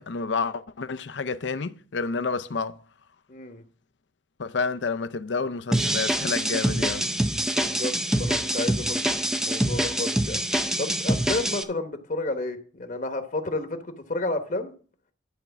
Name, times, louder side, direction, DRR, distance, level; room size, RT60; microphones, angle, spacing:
voice 1, 0.0-2.8 4.4-7.1, left 4 dB, 70° left, 0.6 m, -29 dB
voice 2, 3.3-3.6 7.4-7.9 8.2-10.4 10.8-14.7, left 2 dB, 45° left, 1.0 m, -31 dB
sound 1, 5.7-11.6, right 1 dB, 5° right, 0.5 m, -25 dB
11.5 x 4.4 x 7.0 m
head